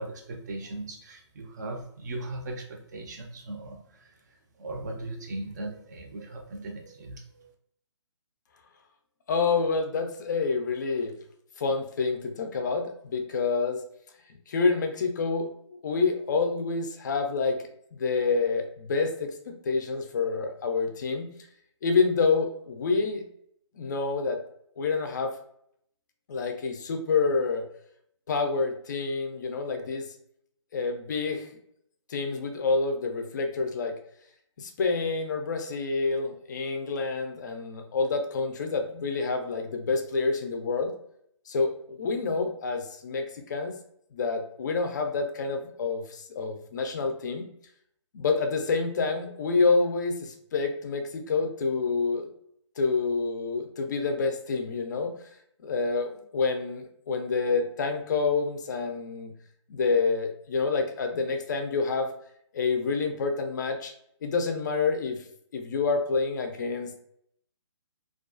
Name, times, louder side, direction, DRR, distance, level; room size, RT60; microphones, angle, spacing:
voice 1, 0.0-4.2 4.6-7.5, right 2 dB, 35° right, 2 dB, 0.5 m, -38 dB
voice 2, 9.3-11.1 11.6-13.8 14.5-15.5 15.8-17.6 18.0-21.3 21.8-23.2 23.8-24.4 24.8-25.3 26.3-27.6 28.3-30.0 30.7-31.5 32.1-33.9 34.6-40.9 41.5-43.2 43.5-43.7 44.1-47.4 48.1-52.3 52.8-55.1 55.6-59.3 59.7-62.1 62.5-63.9 64.2-65.2 65.5-66.9, left 4 dB, 40° left, 5 dB, 0.4 m, -27 dB
2.3 x 2.2 x 2.4 m, 0.69 s
hypercardioid pair, 160°, 16 cm